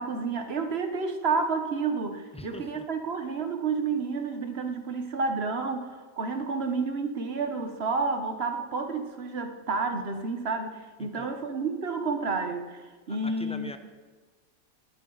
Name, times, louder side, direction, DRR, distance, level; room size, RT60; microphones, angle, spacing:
voice 1, 0.0-12.8 13.1-13.7, right 4 dB, 50° right, 6 dB, 1.2 m, -30 dB
voice 2, 2.3-2.8 11.0-11.3 13.1-13.8, left 1 dB, 10° left, 7 dB, 0.4 m, -43 dB
17.0 x 11.5 x 3.9 m, 1.4 s
omnidirectional pair, 1.5 m